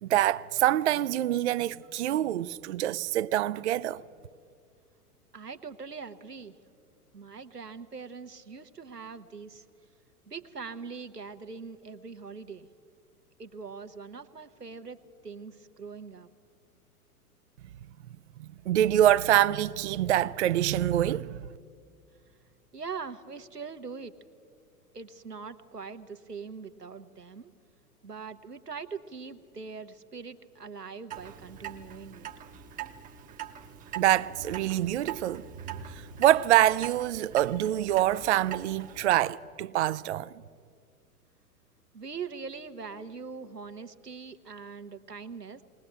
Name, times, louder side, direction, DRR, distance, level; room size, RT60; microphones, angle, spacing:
voice 1, 0.0-4.0 18.4-21.4 34.0-35.4 36.2-40.3, right 13 dB, 50° right, 0.5 m, -25 dB
voice 2, 5.3-6.6 7.1-9.6 10.3-12.7 13.4-15.0 15.2-16.3 22.7-24.1 24.9-27.5 28.0-32.3 41.9-45.6, right 5 dB, 90° right, 1.1 m, -42 dB
Clock, 31.1-39.2, right 9 dB, 15° right, 0.8 m, -42 dB
21.0 x 18.5 x 8.7 m
figure-of-eight pair, 105°, 46 cm